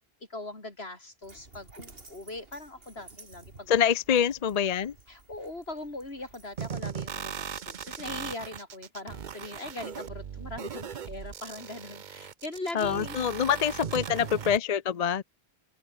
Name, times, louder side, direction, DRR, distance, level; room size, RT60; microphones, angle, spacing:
voice 1, 0.3-3.8 5.1-13.2 13.5-13.7 14.1-14.3, left 2 dB, 75° left, 4.8 m, -41 dB
Dog, 1.2-6.7, right 3 dB, 65° right, 3.3 m, -53 dB
voice 2, 3.7-4.9 12.7-15.2, left 8 dB, 45° left, 0.6 m, -25 dB
sound 1, 6.6-14.6, right 7 dB, 50° right, 0.8 m, -38 dB
open air
omnidirectional pair, 1.1 m